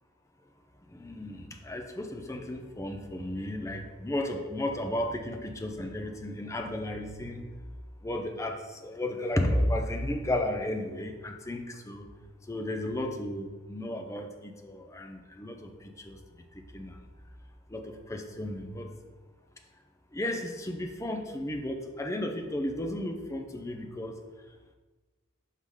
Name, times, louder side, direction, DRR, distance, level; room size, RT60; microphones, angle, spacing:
voice 1, 0.9-7.4 8.0-12.0 12.5-15.7 16.0-16.2 16.7-16.9 17.7-18.9 20.1-24.2, left 1 dB, 15° left, 4 dB, 0.5 m, -33 dB
5.6 x 4.8 x 3.8 m, 1.2 s
head